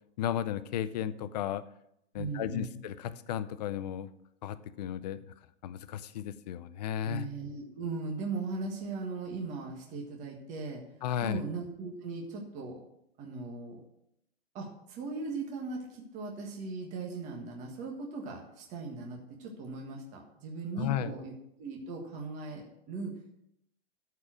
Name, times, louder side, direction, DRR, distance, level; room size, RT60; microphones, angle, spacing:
voice 1, 0.2-1.6 2.1-4.1 4.4-5.2 5.6-7.3 11.0-11.4 20.8-21.1, left 10 dB, 40° left, 14 dB, 0.6 m, -34 dB
voice 2, 2.1-2.8 7.0-10.8 11.2-12.8 13.2-13.8 14.5-21.3 21.6-23.1, right 3 dB, 20° right, 0 dB, 1.5 m, -38 dB
13.5 x 4.7 x 6.2 m, 0.77 s
hypercardioid pair, 155°, 33 cm